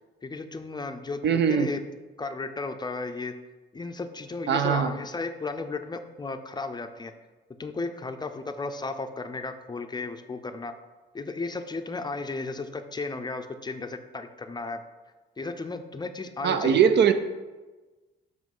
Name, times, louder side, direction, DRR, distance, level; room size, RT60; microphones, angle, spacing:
voice 1, 0.2-1.8 2.2-3.3 3.7-7.1 7.6-10.7 11.1-14.8 15.4-17.0, left 3 dB, 20° left, 7 dB, 0.5 m, -34 dB
voice 2, 1.2-1.7 4.5-4.9 16.4-17.1, right 7 dB, 60° right, 10 dB, 0.5 m, -21 dB
7.5 x 3.1 x 5.4 m, 1.2 s
cardioid pair, 90°, 20 cm